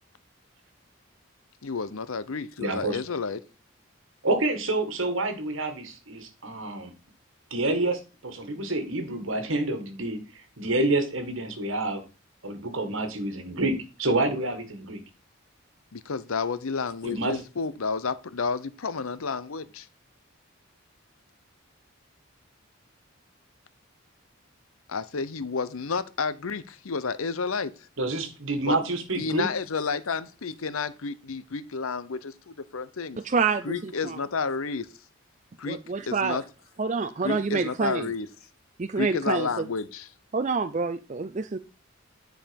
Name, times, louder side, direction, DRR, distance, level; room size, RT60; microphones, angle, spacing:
voice 1, 1.6-3.4 15.9-19.9 24.9-27.7 28.6-28.8 29.2-33.2 33.6-34.9 35.6-35.8 36.1-36.4 37.2-38.3 39.0-40.1, left 4 dB, 80° left, 0.8 m, -31 dB
voice 2, 2.6-3.0 4.2-6.9 7.5-10.2 10.6-12.0 12.4-15.0 17.0-17.4 28.0-29.5, right 2 dB, 70° right, 1.8 m, -28 dB
voice 3, 33.2-34.2 35.6-36.4 36.8-38.1 38.8-39.7 40.3-41.6, right 4 dB, 35° right, 0.4 m, -27 dB
10.0 x 5.1 x 5.2 m
head